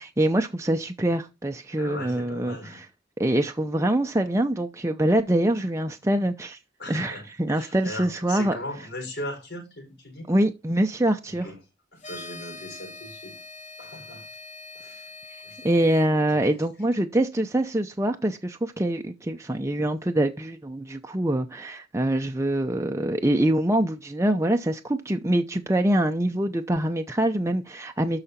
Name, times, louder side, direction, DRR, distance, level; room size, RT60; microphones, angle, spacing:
voice 1, 0.0-2.8 3.2-6.6 6.9-8.6 10.3-11.5 15.6-28.2, right 1 dB, 15° right, 0.7 m, -24 dB
voice 2, 1.8-2.8 6.8-10.3 11.2-11.6 11.9-13.4 13.8-14.3 14.7-15.1 15.4-15.9 16.3-16.6, left 1 dB, 65° left, 5.8 m, -39 dB
sound 1, 12.0-16.1, left 3 dB, 45° left, 3.8 m, -43 dB
12.5 x 5.0 x 4.3 m
head